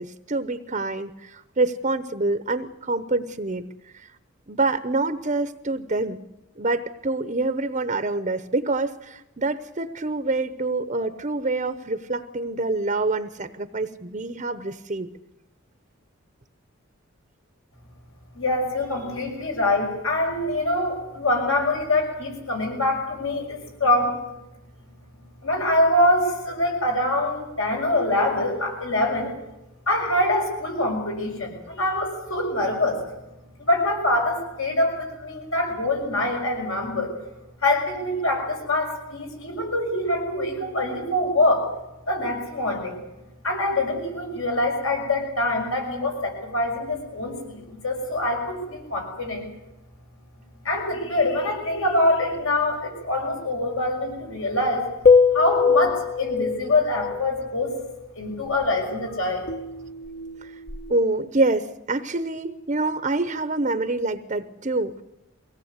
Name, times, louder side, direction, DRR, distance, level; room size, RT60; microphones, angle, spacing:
voice 1, 0.0-3.7 3.9-4.1 4.5-6.2 6.6-15.1 60.4-60.6 60.9-65.0, right 2 dB, 35° right, 11 dB, 0.8 m, -26 dB
voice 2, 18.3-24.1 25.4-29.3 29.9-33.0 33.6-37.1 37.6-41.7 42.1-43.0 43.4-49.5 50.6-54.8 55.3-57.7 58.2-59.5, left 1 dB, 75° left, 2 dB, 5.8 m, -24 dB
sound 1, 55.0-57.3 59.5-61.0, left 5 dB, 50° left, 1.2 m, -22 dB
23.5 x 17.5 x 8.2 m, 0.96 s
head